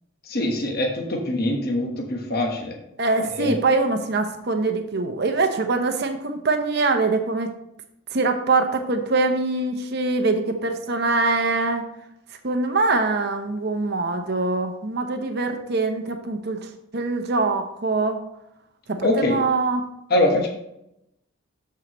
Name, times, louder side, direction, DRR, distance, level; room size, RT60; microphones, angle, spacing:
voice 1, 0.2-2.8 3.4-3.5 19.0-19.4 20.1-20.5, left 1 dB, 45° left, 1 dB, 1.2 m, -23 dB
voice 2, 3.0-7.5 8.1-11.8 12.4-16.6 16.9-18.2 18.9-19.8, right 3 dB, 50° right, 5 dB, 0.7 m, -23 dB
12.5 x 4.7 x 3.0 m, 0.82 s
head